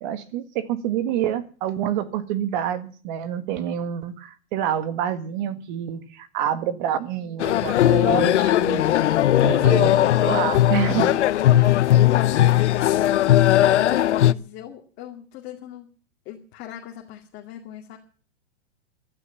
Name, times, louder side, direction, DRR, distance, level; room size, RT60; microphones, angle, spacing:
voice 1, 0.0-8.9 9.4-11.2, right 10 dB, 40° right, 12 dB, 1.7 m, -27 dB
sound 1, 7.4-14.3, left 13 dB, 80° left, 0.9 m, -18 dB
voice 2, 12.0-15.9 16.2-18.0, left 11 dB, 30° left, 1 dB, 2.4 m, -40 dB
14.5 x 13.0 x 7.0 m, 0.42 s
hypercardioid pair, 150°, 35 cm